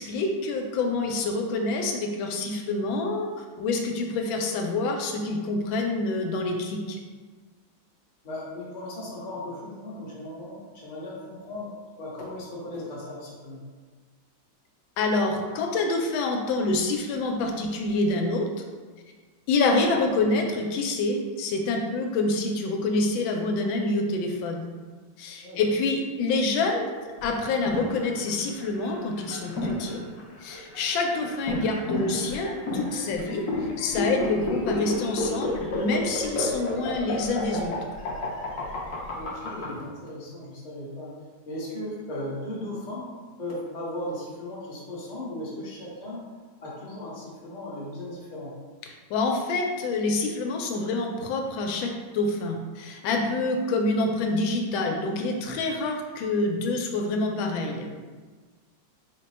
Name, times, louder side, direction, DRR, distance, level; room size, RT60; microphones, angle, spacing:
voice 1, 0.0-7.0 15.0-18.5 19.5-24.7 25.2-26.9 27.2-30.0 30.4-33.4 33.8-37.8 48.9-58.1, left 3 dB, 85° left, 2 dB, 1.3 m, -27 dB
voice 2, 8.2-11.7 12.0-13.6 25.4-25.6 39.2-41.1 41.4-43.1 43.4-46.2 46.6-48.5, left 1 dB, 35° left, -6 dB, 0.7 m, -37 dB
sound 1, 27.2-39.7, left 2 dB, 65° left, 0.8 m, -31 dB
3.9 x 2.2 x 4.2 m, 1.4 s
omnidirectional pair, 2.1 m